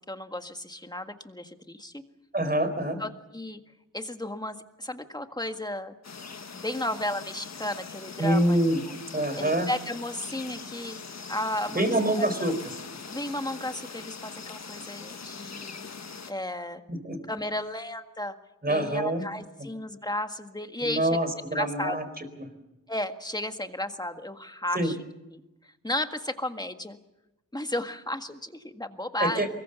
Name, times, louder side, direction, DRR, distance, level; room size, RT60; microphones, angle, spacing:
voice 1, 0.1-2.0 3.0-3.6 3.9-5.9 6.5-8.6 8.9-9.0 9.4-11.0 11.3-11.8 12.2-12.5 13.1-15.9 16.3-16.8 17.3-18.4 18.7-21.2 21.5-22.0 22.9-25.0 25.3-27.0 27.5-29.5, left 1 dB, 10° left, 7 dB, 1.8 m, -34 dB
voice 2, 2.3-3.0 8.2-8.8 9.1-9.7 11.7-12.5 16.9-17.2 18.6-19.2 19.6-19.7 20.8-22.5 24.7-24.9 29.2-29.5, right 1 dB, 30° right, 9 dB, 4.4 m, -26 dB
sound 1, 6.0-16.3, left 5 dB, 55° left, 1.5 m, -42 dB
24.0 x 21.5 x 7.0 m, 0.96 s
wide cardioid pair, 80°, 32 cm